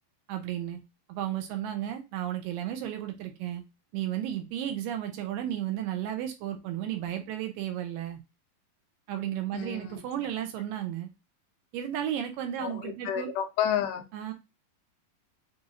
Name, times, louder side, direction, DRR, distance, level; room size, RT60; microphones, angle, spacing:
voice 1, 0.3-0.8 1.1-3.6 3.9-8.2 9.1-11.1 11.7-13.3 14.1-14.3, right 11 dB, 80° right, 2.2 m, -33 dB
voice 2, 9.5-10.0 12.6-14.0, left 9 dB, 80° left, 1.9 m, -30 dB
6.2 x 2.5 x 2.6 m
omnidirectional pair, 4.1 m